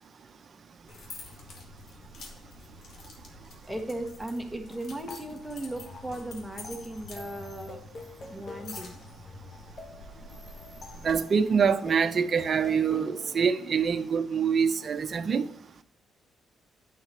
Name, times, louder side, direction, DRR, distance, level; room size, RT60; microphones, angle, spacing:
sound 1, 0.9-11.1, left 2 dB, 65° left, 2.0 m, -47 dB
voice 1, 3.7-7.8 8.3-8.9, right 1 dB, ahead, 1.4 m, -37 dB
sound 2, 5.1-13.4, left 3 dB, 45° left, 1.2 m, -47 dB
voice 2, 11.0-15.4, right 6 dB, 45° right, 0.6 m, -25 dB
9.6 x 5.7 x 4.3 m
cardioid pair, 90°, 0 cm